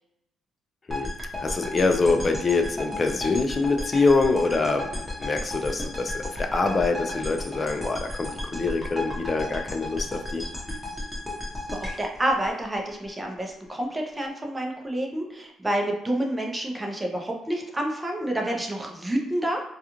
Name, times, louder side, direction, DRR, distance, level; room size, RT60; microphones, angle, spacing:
sound 1, 0.9-13.1, left 1 dB, 10° left, 0.9 m, -34 dB
voice 1, 1.4-4.9 5.2-10.4, left 3 dB, 35° left, 5 dB, 0.4 m, -25 dB
voice 2, 11.7-19.6, right 1 dB, 15° right, 1 dB, 0.6 m, -28 dB
2.3 x 2.3 x 2.9 m, 0.86 s
cardioid pair, 90°, 0 cm